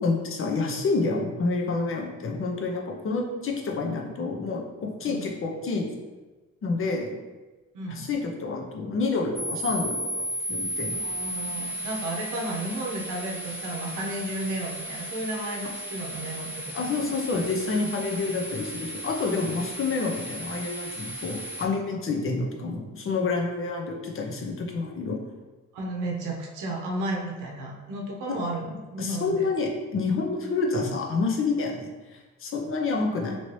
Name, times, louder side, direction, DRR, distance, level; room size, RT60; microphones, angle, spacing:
voice 1, 0.0-5.9 6.6-7.1 7.9-10.2 10.5-11.0 16.7-25.2 28.3-28.4 29.0-33.4, left 3 dB, 45° left, 1 dB, 0.7 m, -28 dB
voice 2, 7.7-8.1 10.9-17.1 25.7-29.5 33.0-33.4, right 1 dB, 90° right, 0 dB, 0.7 m, -33 dB
sound 1, 9.4-21.7, right 1 dB, 5° right, 0.8 m, -35 dB
3.0 x 2.8 x 3.1 m, 1.2 s
cardioid pair, 90°, 30 cm